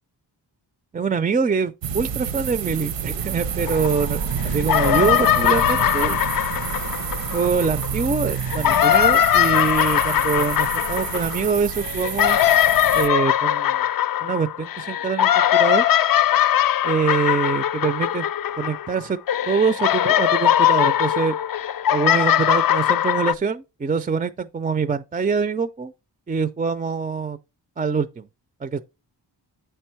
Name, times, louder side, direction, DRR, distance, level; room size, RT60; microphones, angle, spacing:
voice 1, 0.9-6.2 7.3-12.4 12.9-13.8 14.2-15.9 16.8-18.3 18.6-19.2 19.5-21.3 21.9-25.9 26.3-27.4 27.8-28.3 28.6-28.8, right 5 dB, 20° right, 0.3 m, -24 dB
sound 1, 1.8-13.1, right 7 dB, 85° right, 0.8 m, -28 dB
sound 2, 3.7-4.3 4.6-7.9 8.4-19.0 19.3-23.3, left 11 dB, 55° left, 0.4 m, -20 dB
7.8 x 4.5 x 4.4 m
wide cardioid pair, 95°, 43 cm